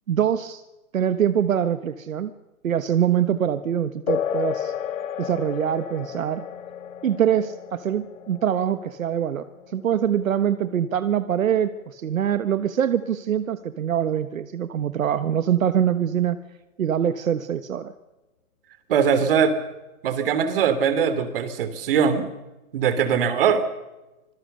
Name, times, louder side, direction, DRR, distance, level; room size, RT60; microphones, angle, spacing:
voice 1, 0.1-0.6 0.9-2.3 2.6-4.7 5.2-6.4 7.0-9.5 9.7-16.4 16.8-17.9, right 9 dB, 70° right, 11 dB, 1.5 m, -24 dB
sound 1, 4.1-12.1, left 9 dB, 65° left, 2.6 m, -33 dB
voice 2, 18.9-19.5 20.0-22.3 22.7-23.6, right 7 dB, 40° right, 12 dB, 3.1 m, -21 dB
26.0 x 22.5 x 6.8 m, 1.0 s
hypercardioid pair, 170°, 42 cm